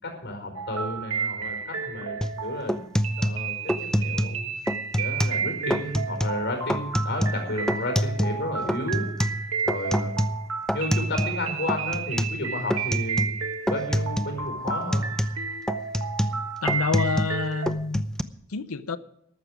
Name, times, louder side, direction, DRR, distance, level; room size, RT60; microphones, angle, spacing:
voice 1, 0.0-2.8 3.2-4.5 4.9-9.1 9.6-10.2 10.7-13.3 13.7-15.0, left 1 dB, 55° left, 5.1 m, -32 dB
sound 1, 0.5-17.7, right 6 dB, 85° right, 1.5 m, -32 dB
sound 2, 2.2-2.4 2.7-4.4 4.7-5.4 5.7-6.4 6.7-8.4 8.7-11.4 11.7-12.4 12.7-13.4 13.7-14.4 14.7-17.4 17.7-18.2, equal, 5° left, 0.6 m, -26 dB
voice 2, 16.6-18.0 18.5-19.0, left 4 dB, 90° left, 0.8 m, -27 dB
14.0 x 12.0 x 5.0 m
head